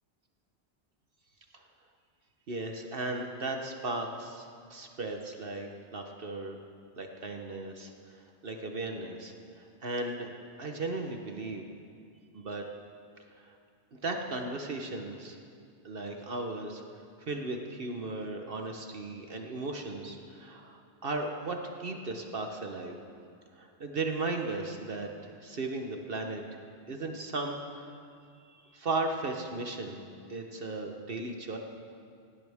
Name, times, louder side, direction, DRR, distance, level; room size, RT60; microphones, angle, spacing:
voice 1, 2.5-6.6 7.0-7.9 8.4-9.3 9.8-10.3 10.6-11.7 12.3-12.6 13.4-13.5 13.9-15.4 15.8-16.8 17.3-21.6 21.8-23.0 23.6-25.1 25.4-26.4 26.9-28.0 28.7-30.0 30.3-31.6, right 2 dB, 55° right, 3 dB, 1.2 m, -36 dB
17.5 x 17.5 x 3.6 m, 2.3 s
omnidirectional pair, 1.1 m